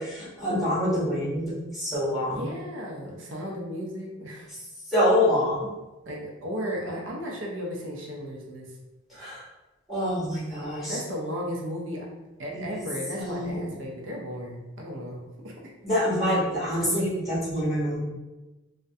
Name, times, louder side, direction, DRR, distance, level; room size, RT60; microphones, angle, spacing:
voice 1, 0.0-2.4 4.9-5.7 9.1-9.4 9.9-11.0 12.7-12.8 13.1-13.8 15.8-18.0, equal, ahead, -10 dB, 0.9 m, -26 dB
voice 2, 2.3-4.5 6.1-8.7 10.9-12.1 12.4-15.5, equal, 70° right, -1 dB, 0.5 m, -35 dB
2.4 x 2.1 x 2.6 m, 1.1 s
head